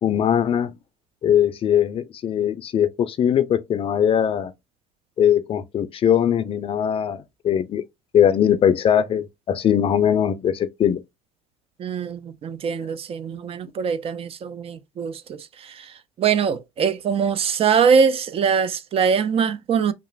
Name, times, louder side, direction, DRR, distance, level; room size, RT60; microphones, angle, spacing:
voice 1, 0.0-0.7 1.2-4.5 5.2-7.8 8.1-11.0, left 9 dB, 35° left, 0.4 m, -20 dB
voice 2, 11.8-15.7 16.2-19.9, right 6 dB, 40° right, 0.4 m, -22 dB
2.9 x 2.4 x 2.4 m
hypercardioid pair, 75°, 16 cm